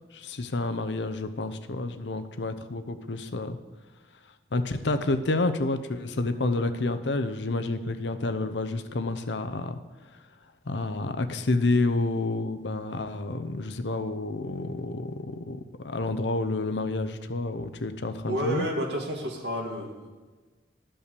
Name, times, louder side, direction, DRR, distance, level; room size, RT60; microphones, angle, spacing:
voice 1, 0.1-3.6 4.5-9.8 10.7-18.7, left 2 dB, 80° left, 9 dB, 0.8 m, -29 dB
voice 2, 18.3-20.1, equal, 70° right, 1 dB, 2.0 m, -30 dB
12.5 x 5.5 x 6.8 m, 1.3 s
head